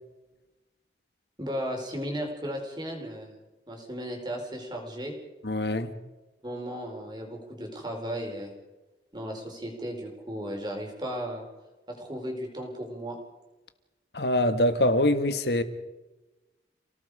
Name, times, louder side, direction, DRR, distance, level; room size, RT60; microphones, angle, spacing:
voice 1, 1.4-3.3 3.7-5.1 6.4-8.5 9.1-11.4 11.9-13.2, equal, 25° right, 4.5 m, -35 dB
voice 2, 5.4-5.9 14.1-15.6, left 1 dB, 70° left, 1.7 m, -24 dB
30.0 x 18.5 x 5.0 m
head